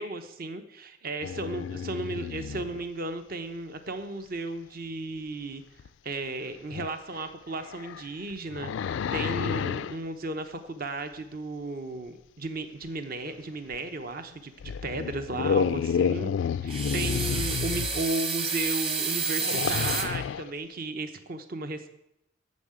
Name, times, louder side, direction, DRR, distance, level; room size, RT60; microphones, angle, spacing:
voice 1, 0.0-5.6 6.0-14.5 14.8-16.3 16.6-21.9, right 2 dB, 50° right, 9 dB, 0.9 m, -35 dB
sound 1, 1.2-2.8 5.8-5.9 6.7-6.9 7.6-10.0 13.7-13.8 14.6-18.0 19.2-20.5, left 7 dB, 70° left, 0.3 m, -30 dB
sound 2, 16.7-20.1, right 5 dB, 30° right, 1.4 m, -30 dB
9.5 x 7.4 x 8.8 m, 0.82 s
head